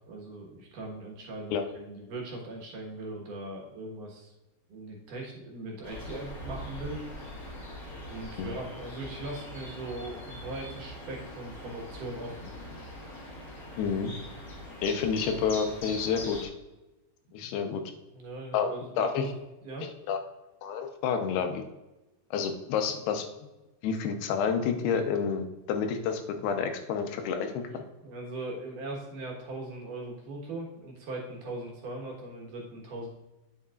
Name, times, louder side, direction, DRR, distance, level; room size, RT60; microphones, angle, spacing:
voice 1, 0.1-4.3 4.7-7.4 8.1-12.5 18.1-19.3 19.6-19.9 27.5-33.1, right 2 dB, 65° right, -1 dB, 2.6 m, -40 dB
sound 1, 5.8-16.4, left 1 dB, 55° left, 1.0 m, -42 dB
voice 2, 13.8-14.1 14.8-16.5 17.3-17.8 18.5-19.2 20.1-20.2 20.6-21.6 22.3-23.3 23.8-27.6, left 6 dB, 90° left, 6 dB, 2.9 m, -29 dB
9.4 x 7.8 x 2.4 m, 1.0 s
omnidirectional pair, 4.5 m